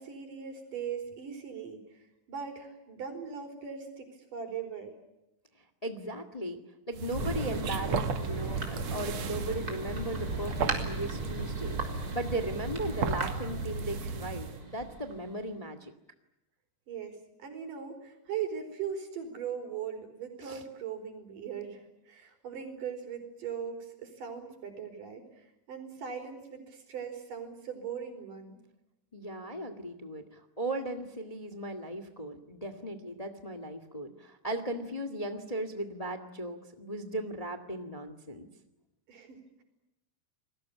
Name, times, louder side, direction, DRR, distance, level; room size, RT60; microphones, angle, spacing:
voice 1, 0.0-2.0 2.3-4.9 16.9-25.4 25.7-28.6 39.1-39.6, right 7 dB, 90° right, 5 dB, 6.2 m, -40 dB
voice 2, 5.8-6.6 6.9-11.8 12.1-15.9 20.4-20.6 29.1-38.5, right 1 dB, 15° left, 10 dB, 1.5 m, -37 dB
sound 1, 6.9-14.6, right 5 dB, 60° right, 2.6 m, -35 dB
Thunder, 7.1-15.5, right 2 dB, 30° right, 4.5 m, -38 dB
29.5 x 20.5 x 8.5 m, 0.92 s
omnidirectional pair, 3.7 m